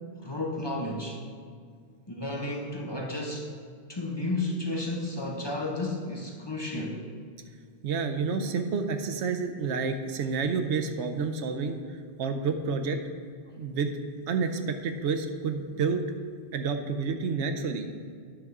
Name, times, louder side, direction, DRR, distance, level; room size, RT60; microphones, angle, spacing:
voice 1, 0.2-1.2 2.1-3.5 3.9-7.0, left 2 dB, 25° left, -1 dB, 0.8 m, -32 dB
voice 2, 7.8-11.8 12.2-13.0 13.6-14.0 14.3-16.0 16.5-17.9, right 5 dB, 85° right, 7 dB, 1.0 m, -29 dB
9.2 x 3.6 x 6.5 m, 2.1 s
omnidirectional pair, 1.1 m